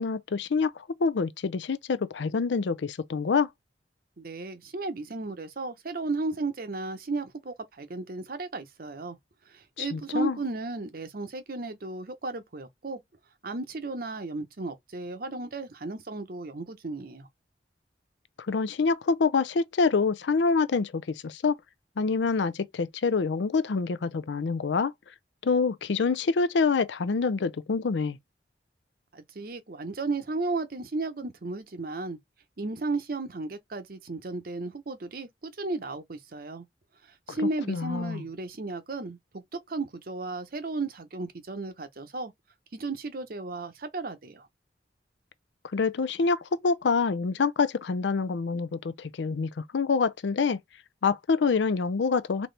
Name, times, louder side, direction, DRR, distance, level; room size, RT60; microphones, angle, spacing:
voice 1, 0.0-3.5 9.8-10.4 18.5-21.6 22.0-24.9 25.4-28.2 37.7-38.2 45.7-50.6 51.0-52.5, left 4 dB, 75° left, 0.5 m, -26 dB
voice 2, 4.2-9.2 9.5-13.0 13.4-17.3 29.1-32.2 32.6-36.6 37.0-42.3 42.7-44.5, right 3 dB, 55° right, 0.8 m, -34 dB
4.0 x 2.9 x 3.2 m
head